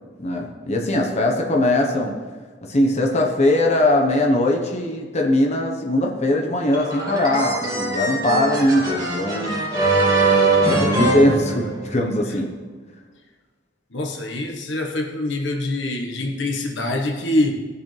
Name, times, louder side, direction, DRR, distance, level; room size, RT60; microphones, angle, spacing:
voice 1, 0.2-2.2 2.6-9.6 10.7-12.5, left 1 dB, 40° left, 0 dB, 1.2 m, -20 dB
sound 1, 6.7-12.1, right 2 dB, 20° right, 2.6 m, -22 dB
voice 2, 13.9-17.5, left 1 dB, 80° left, 2 dB, 1.4 m, -24 dB
18.5 x 7.2 x 3.4 m, 1.4 s
head